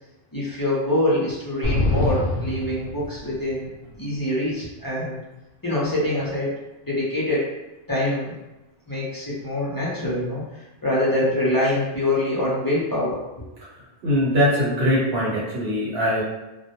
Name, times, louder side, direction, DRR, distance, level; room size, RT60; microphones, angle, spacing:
voice 1, 0.3-3.7 4.0-5.2 5.6-6.6 6.8-7.5 7.9-8.4 8.9-13.2, left 1 dB, 30° left, -7 dB, 0.5 m, -24 dB
sound 1, 1.6-3.5, left 2 dB, 70° left, 0.7 m, -24 dB
voice 2, 14.0-16.2, equal, 80° right, -7 dB, 1.0 m, -21 dB
2.1 x 2.1 x 2.7 m, 1.0 s
omnidirectional pair, 1.0 m